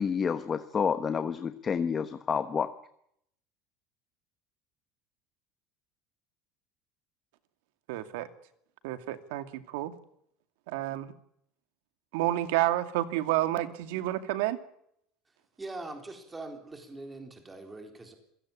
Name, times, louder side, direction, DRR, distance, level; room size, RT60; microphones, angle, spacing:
voice 1, 0.0-2.7, left 6 dB, 20° left, 10 dB, 1.0 m, -29 dB
voice 2, 7.9-8.3 8.8-9.9 10.7-11.1 12.1-14.6, right 15 dB, 85° right, 11 dB, 2.5 m, -30 dB
voice 3, 15.3-18.1, right 2 dB, 10° right, 5 dB, 3.9 m, -43 dB
27.0 x 16.5 x 8.6 m, 0.73 s
cardioid pair, 165°, 0 cm